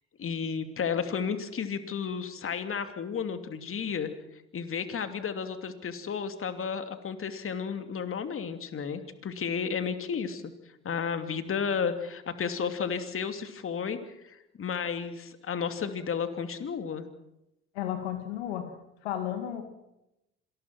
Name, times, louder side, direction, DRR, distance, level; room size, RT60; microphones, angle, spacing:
voice 1, 0.2-4.1 4.5-10.4 10.8-14.0 14.2-17.0, left 6 dB, 45° left, 8 dB, 2.8 m, -32 dB
voice 2, 17.7-18.8 19.0-19.6, left 10 dB, 90° left, 7 dB, 2.4 m, -33 dB
26.5 x 20.0 x 6.2 m, 0.88 s
hypercardioid pair, 65°, 31 cm